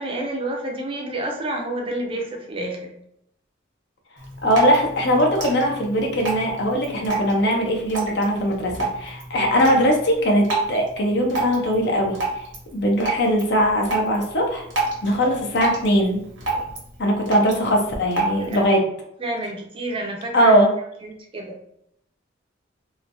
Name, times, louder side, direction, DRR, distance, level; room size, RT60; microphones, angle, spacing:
voice 1, 0.0-2.9 18.4-18.6 19.2-20.6 21.0-21.6, right 1 dB, 30° right, 1 dB, 0.5 m, -29 dB
Drip, 4.2-18.7, right 3 dB, 80° right, 0.9 m, -30 dB
voice 2, 4.4-12.4 12.7-14.6 15.0-16.2 17.0-18.8 20.3-20.7, equal, 60° left, 1 dB, 0.6 m, -20 dB
3.0 x 2.2 x 2.5 m, 0.74 s
head